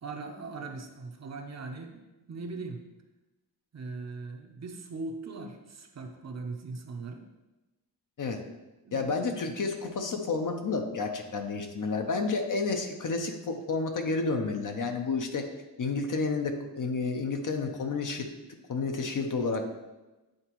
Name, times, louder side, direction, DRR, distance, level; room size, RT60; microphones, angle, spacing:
voice 1, 0.0-2.8 3.7-7.2 8.8-9.4, right 3 dB, 40° right, 3 dB, 0.6 m, -40 dB
voice 2, 8.9-15.5 15.8-18.3 18.7-19.7, left 4 dB, 50° left, 4 dB, 0.7 m, -30 dB
8.9 x 3.9 x 3.0 m, 1.1 s
wide cardioid pair, 125°, 41 cm